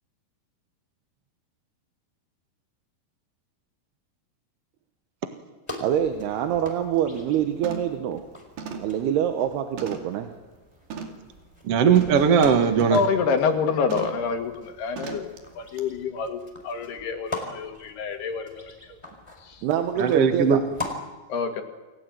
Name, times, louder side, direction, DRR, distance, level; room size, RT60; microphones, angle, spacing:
sound 1, 5.7-21.0, left 2 dB, 10° left, 4.0 m, -42 dB
sound 2, 5.8-5.9 6.4-6.6 7.0-7.3 7.6-8.0 8.6-10.2 10.9-11.3 11.9-13.2 13.9-14.3 15.0-15.4 15.8-15.9, right 5 dB, 70° right, 4.1 m, -38 dB
voice 1, 5.8-8.3 8.8-10.3 18.9-19.0 19.6-20.6, right 9 dB, 85° right, 6 dB, 3.3 m, -25 dB
voice 2, 11.6-13.0 20.0-20.6, right 6 dB, 50° right, 7 dB, 2.0 m, -19 dB
voice 3, 12.9-15.3 15.6-18.7 19.4-19.6 21.3-21.6, left 5 dB, 85° left, 6 dB, 4.1 m, -27 dB
29.0 x 19.0 x 9.3 m, 1.2 s
omnidirectional pair, 4.5 m